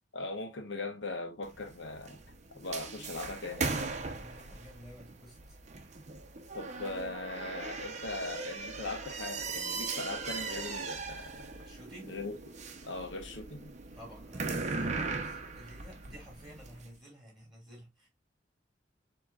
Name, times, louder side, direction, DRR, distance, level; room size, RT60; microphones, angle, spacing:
voice 1, 0.1-2.2 2.5-3.8 6.5-11.5 12.1-12.3 12.8-13.7, left 2 dB, 85° left, 1.0 m, -40 dB
sound 1, 1.4-16.8, right 4 dB, 40° right, 0.7 m, -39 dB
voice 2, 4.2-5.6 11.6-12.2 13.9-18.1, equal, ahead, 3.1 m, -51 dB
7.3 x 3.0 x 2.3 m
head